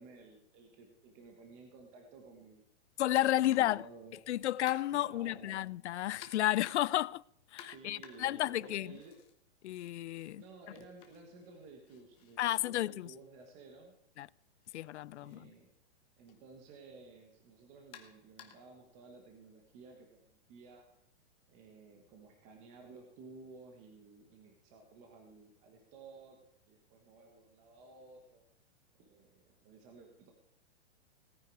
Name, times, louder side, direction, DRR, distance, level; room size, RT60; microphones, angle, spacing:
voice 1, 0.0-2.7 3.4-4.2 4.9-5.6 7.6-9.2 10.2-13.9 15.2-15.7 16.2-20.9 21.5-26.4 26.7-28.4 29.0-30.3, right 4 dB, 20° right, 1.3 m, -55 dB
voice 2, 3.0-3.9 4.3-7.2 7.5-9.0 9.6-10.4 12.4-13.1 14.2-14.3 14.7-15.5, left 14 dB, 80° left, 0.5 m, -32 dB
sound 1, 3.2-3.8 4.7-5.2 6.2-7.0 7.6-9.3 9.7-13.5 14.6-14.8 15.2-15.4 16.3-16.4 17.9-18.8, left 9 dB, 15° left, 0.8 m, -56 dB
18.0 x 9.3 x 4.7 m
hypercardioid pair, 170°, 34 cm